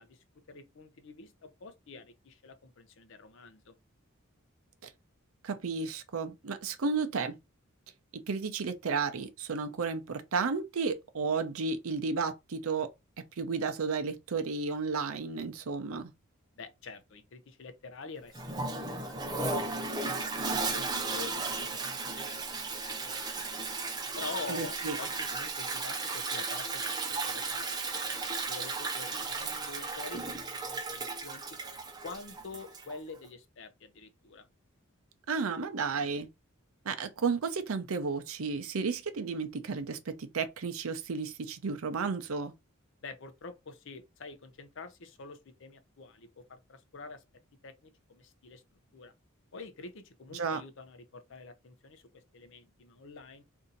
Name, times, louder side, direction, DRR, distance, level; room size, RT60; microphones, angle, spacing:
voice 1, 0.0-3.8 16.6-19.4 19.7-20.4 20.7-22.6 23.0-23.4 24.2-28.1 28.5-31.5 32.0-34.5 43.0-47.2 47.6-48.6 48.9-49.1 49.5-53.4, left 3 dB, 60° left, 0.6 m, -47 dB
voice 2, 5.4-7.3 8.3-12.9 13.4-16.1 24.5-25.0 35.3-36.3 36.8-42.5 50.3-50.6, right 4 dB, 75° right, 0.6 m, -33 dB
Toilet flush, 18.3-33.0, right 3 dB, 20° right, 0.5 m, -35 dB
2.7 x 2.6 x 3.8 m
head